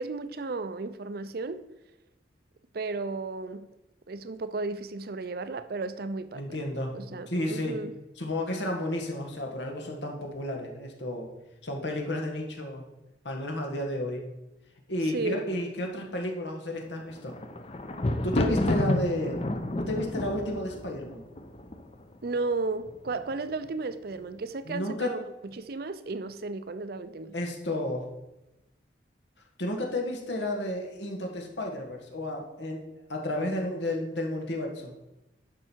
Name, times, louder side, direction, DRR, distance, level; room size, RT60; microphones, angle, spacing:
voice 1, 0.0-1.7 2.7-3.7 4.1-6.4 6.9-7.9 15.1-15.4 22.2-25.2 25.5-27.4, right 3 dB, 60° right, 0.5 m, -34 dB
voice 2, 6.3-6.9 7.3-7.8 8.2-11.3 11.6-12.8 13.2-14.3 14.9-17.3 18.2-19.5 19.8-21.2 24.6-25.1 27.3-28.1 29.6-32.8 33.1-34.9, left 1 dB, 85° left, 1.7 m, -32 dB
Thunder, 17.0-22.1 22.9-23.4 23.6-23.7, left 1 dB, 35° left, 0.7 m, -30 dB
10.5 x 6.0 x 4.6 m
head